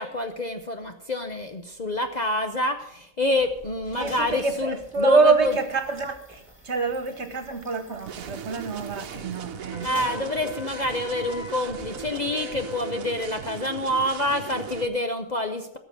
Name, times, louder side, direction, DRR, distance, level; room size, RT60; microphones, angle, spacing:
voice 1, 0.0-5.5 9.8-15.8, left 1 dB, 35° left, 5 dB, 0.8 m, -27 dB
sound 1, 3.2-12.5, right 1 dB, 10° right, 2.6 m, -48 dB
voice 2, 3.9-9.9, right 4 dB, 55° right, 8 dB, 1.7 m, -26 dB
sound 2, 8.1-14.9, right 8 dB, 80° right, 1.3 m, -38 dB
Wind instrument woodwind instrument, 9.7-13.1, left 3 dB, 70° left, 2.1 m, -42 dB
17.5 x 6.9 x 6.2 m, 0.79 s
omnidirectional pair, 1.4 m